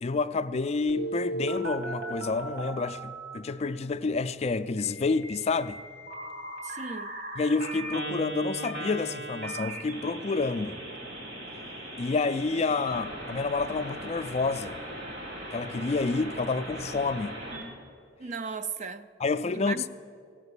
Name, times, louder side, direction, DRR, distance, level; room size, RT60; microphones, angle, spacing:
voice 1, 0.0-5.8 7.4-10.8 12.0-14.8 15.5-17.4 19.2-19.8, left 4 dB, 35° left, 0.4 m, -29 dB
Telephone, 0.9-3.4 4.8-17.6, right 1 dB, 65° right, 3.1 m, -38 dB
voice 2, 6.6-7.1 18.2-19.1 19.5-19.9, right 4 dB, 40° right, 0.5 m, -36 dB
17.0 x 7.9 x 8.3 m
head